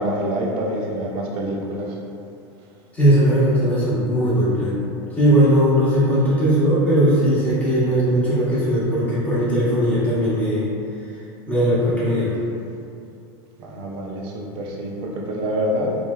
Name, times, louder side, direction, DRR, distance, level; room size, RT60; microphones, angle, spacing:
voice 1, 0.0-2.0 13.6-16.0, equal, 45° right, -2 dB, 0.6 m, -26 dB
voice 2, 2.9-4.8 5.1-10.7 11.5-12.3, equal, 10° left, -10 dB, 1.2 m, -18 dB
4.6 x 2.6 x 2.3 m, 2.6 s
supercardioid pair, 135°, 12 cm